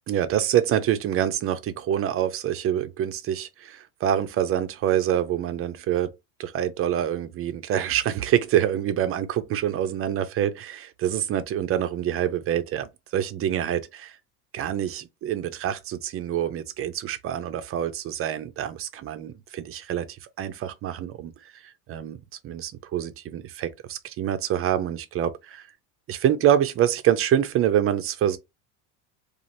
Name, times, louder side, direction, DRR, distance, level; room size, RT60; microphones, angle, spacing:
voice 1, 0.1-6.1 6.4-14.2 14.5-22.2 22.4-25.7 26.1-28.4, right 10 dB, 35° right, 0.4 m, -26 dB
3.1 x 2.4 x 2.5 m
supercardioid pair, 115°, 45 cm